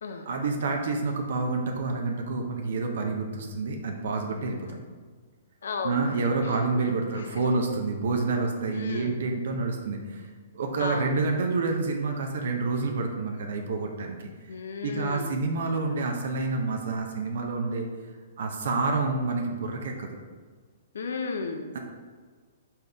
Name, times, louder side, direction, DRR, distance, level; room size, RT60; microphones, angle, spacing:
voice 1, 0.3-4.8 5.8-10.2 10.5-14.3 14.8-17.9 18.4-20.1, right 3 dB, 70° right, 2 dB, 0.6 m, -28 dB
voice 2, 5.6-6.1 6.4-6.6 7.1-7.3 8.7-9.2 10.8-11.1 14.5-15.3 20.9-21.8, left 4 dB, 75° left, 5 dB, 0.4 m, -34 dB
4.2 x 3.7 x 3.4 m, 1.5 s
hypercardioid pair, 130°, 0 cm